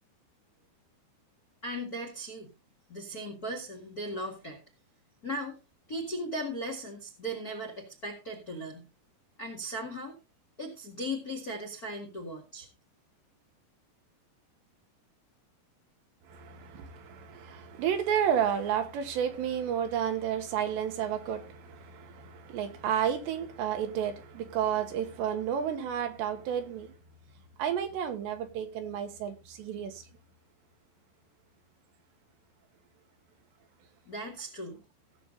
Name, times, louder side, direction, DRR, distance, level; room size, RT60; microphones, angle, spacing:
voice 1, 1.6-2.5 2.9-4.6 5.2-5.6 5.9-8.9 9.4-10.1 10.6-12.7 34.1-34.8, equal, 45° left, 1.1 m, -37 dB
voice 2, 16.3-26.9 27.6-29.9, right 9 dB, 80° right, 3.4 m, -31 dB
17.0 x 7.0 x 4.0 m
omnidirectional pair, 5.2 m